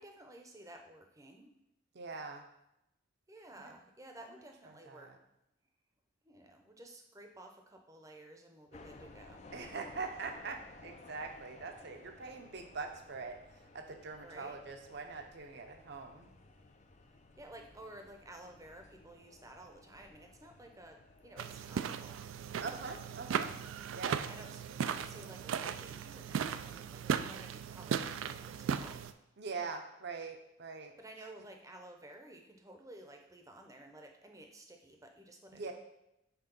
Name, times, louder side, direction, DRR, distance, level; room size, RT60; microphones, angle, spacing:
voice 1, 0.0-1.5 3.3-5.1 6.2-9.5 14.2-14.6 17.4-22.2 24.3-29.1 31.0-35.7, right 1 dB, 15° right, 4 dB, 0.7 m, -53 dB
voice 2, 1.9-2.4 3.5-3.7 4.7-5.2 9.5-16.3 22.6-23.6 23.9-24.2 29.4-31.0 35.5-35.7, right 4 dB, 60° right, 5 dB, 0.7 m, -43 dB
sound 1, 8.7-21.8, left 3 dB, 35° left, 0.5 m, -57 dB
sound 2, 21.4-29.1, right 7 dB, 75° right, 0.3 m, -37 dB
5.9 x 3.7 x 5.3 m, 0.85 s
head